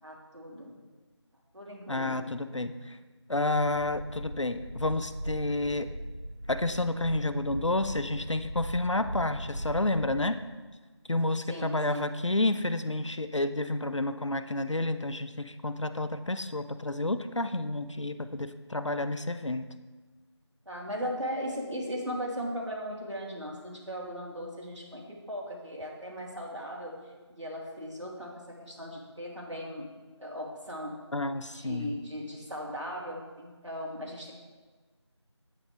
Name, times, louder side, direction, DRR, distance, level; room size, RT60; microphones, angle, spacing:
voice 1, 0.0-0.7 1.5-2.3 11.5-12.1 20.7-26.9 27.3-29.9 30.2-31.0 31.5-34.3, equal, 75° right, -3 dB, 3.1 m, -38 dB
voice 2, 1.9-3.0 3.3-5.9 6.5-10.4 11.1-19.7 31.1-31.9, left 2 dB, 80° left, 11 dB, 0.7 m, -30 dB
sound 1, 3.5-10.3, equal, 50° left, 2.1 m, -39 dB
9.7 x 9.3 x 3.4 m, 1.3 s
figure-of-eight pair, 180°, 15 cm